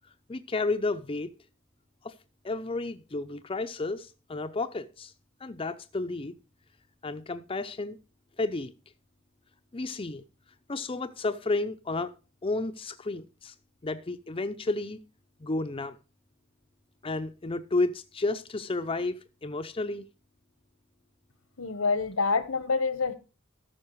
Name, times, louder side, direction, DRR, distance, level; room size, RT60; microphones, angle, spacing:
voice 1, 0.3-1.3 2.0-2.1 2.4-5.1 5.4-6.3 7.0-8.0 8.4-8.7 9.7-10.2 10.7-12.1 12.4-13.5 13.8-15.0 15.4-16.0 17.0-20.0, left 2 dB, 25° left, 0.5 m, -31 dB
voice 2, 21.6-23.1, left 4 dB, 85° left, 1.1 m, -27 dB
13.5 x 5.8 x 4.7 m
head